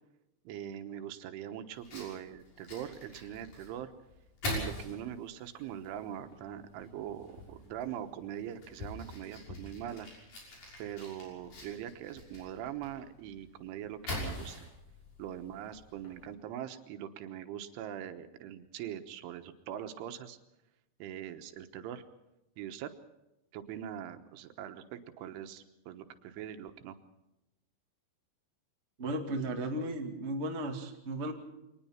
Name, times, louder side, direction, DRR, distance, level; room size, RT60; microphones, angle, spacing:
voice 1, 0.5-3.9 4.4-10.1 10.8-14.7 15.2-20.4 21.0-22.0 22.6-22.9 23.5-27.0, right 10 dB, 85° right, 8 dB, 3.7 m, -42 dB
Fire, 1.7-16.3, left 2 dB, 45° left, 7.6 m, -45 dB
voice 2, 29.0-31.3, right 1 dB, 35° right, 2 dB, 1.0 m, -35 dB
24.5 x 19.5 x 5.8 m, 0.92 s
omnidirectional pair, 5.4 m